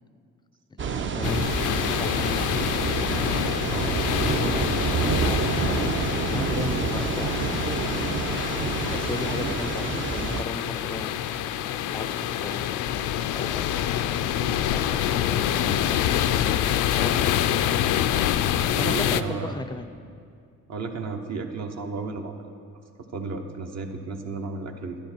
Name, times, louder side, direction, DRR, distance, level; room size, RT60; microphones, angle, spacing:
voice 1, 0.7-3.3 4.2-7.4 8.9-11.2 11.9-12.7 13.4-13.7 14.1-16.0 16.4-17.5 18.8-19.9, left 3 dB, 15° left, 12 dB, 0.4 m, -37 dB
sound 1, 0.8-10.4, right 5 dB, 40° right, 0.6 m, -28 dB
sound 2, 1.2-19.2, left 10 dB, 85° left, 0.5 m, -26 dB
voice 2, 3.7-4.0 9.2-9.6 18.8-19.6 20.7-22.3 23.1-25.0, right 4 dB, 60° right, 4 dB, 1.1 m, -33 dB
11.5 x 10.0 x 4.5 m, 2.3 s
cardioid pair, 90°, 30 cm